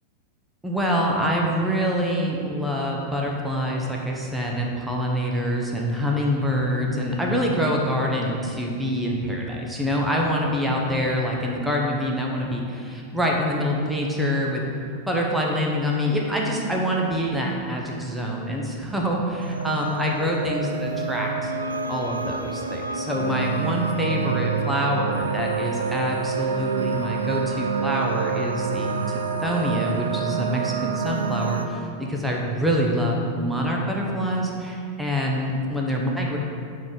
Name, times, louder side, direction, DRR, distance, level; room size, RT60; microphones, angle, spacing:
voice 1, 0.6-14.6 15.1-21.5 21.9-36.4, equal, 5° right, -2 dB, 0.9 m, -25 dB
sound 1, 19.4-31.6, right 5 dB, 75° right, 0.4 m, -28 dB
7.4 x 3.6 x 6.2 m, 2.4 s
figure-of-eight pair, 90°, 0 cm